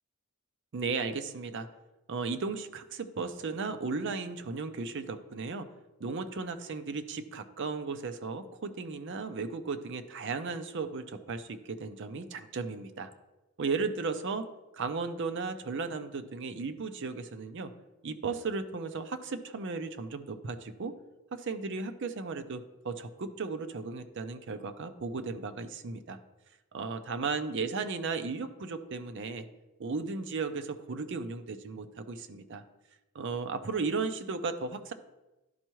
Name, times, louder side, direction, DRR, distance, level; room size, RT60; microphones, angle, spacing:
voice 1, 0.7-1.7 2.1-5.7 6.0-13.1 13.6-14.5 14.7-17.7 18.0-20.9 21.3-26.2 26.7-29.5 29.8-32.6 33.1-34.9, right 4 dB, 55° right, 10 dB, 0.5 m, -35 dB
11.0 x 4.5 x 3.1 m, 1.0 s
head